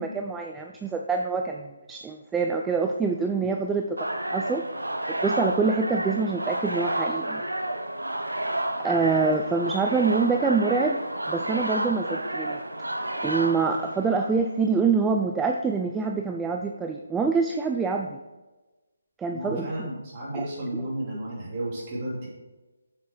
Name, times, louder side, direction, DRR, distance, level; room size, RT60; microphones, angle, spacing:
voice 1, 0.0-4.6 5.1-7.5 8.8-11.0 11.3-12.6 13.2-18.2 19.2-19.9 20.3-20.5, right 4 dB, 5° right, 2 dB, 0.4 m, -26 dB
sound 1, 4.0-14.4, right 1 dB, 80° right, 0.9 m, -30 dB
voice 2, 19.3-22.3, right 1 dB, 30° right, -5 dB, 3.2 m, -33 dB
7.3 x 6.9 x 4.7 m, 1.1 s
figure-of-eight pair, 145°, 0 cm